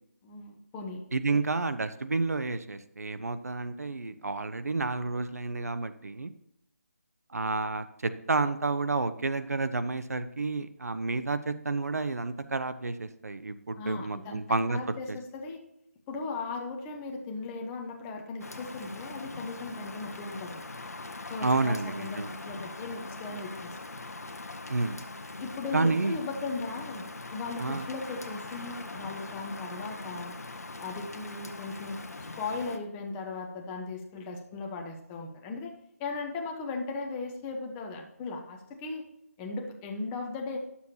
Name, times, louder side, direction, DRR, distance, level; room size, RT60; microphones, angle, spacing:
voice 1, 0.2-1.0 1.3-1.4 13.8-15.6 16.1-20.6 21.3-23.8 25.4-30.4 30.8-32.0 32.4-35.7 36.0-39.0 39.4-40.6, left 3 dB, 15° left, 2 dB, 0.7 m, -37 dB
voice 2, 1.1-6.3 7.3-14.8 15.1-15.2 21.4-22.3 24.7-25.0 25.7-26.2 27.6-27.9, right 3 dB, 75° right, 11 dB, 0.7 m, -30 dB
Rain, 18.4-32.8, left 3 dB, 75° left, 1.1 m, -42 dB
10.5 x 7.1 x 2.8 m, 0.78 s
figure-of-eight pair, 160°, 8 cm